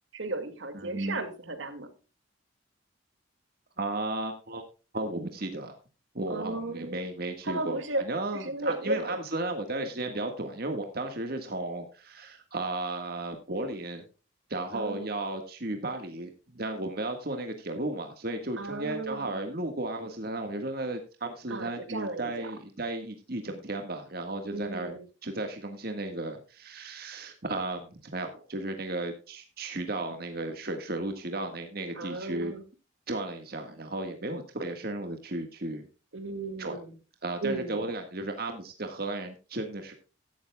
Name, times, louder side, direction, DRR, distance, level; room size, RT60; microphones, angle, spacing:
voice 1, 0.1-1.9 6.3-7.0 7.4-8.0 8.3-9.2 14.7-15.1 18.6-19.4 21.5-22.5 24.5-25.0 32.0-32.6 36.1-36.9 37.4-37.9, right 2 dB, 80° right, 2.1 m, -35 dB
voice 2, 0.7-1.2 3.8-4.6 4.9-5.8 6.2-14.0 14.5-32.5 33.1-35.9 36.6-36.8 37.2-39.9, right 2 dB, 50° right, 1.6 m, -34 dB
15.0 x 12.5 x 2.3 m
head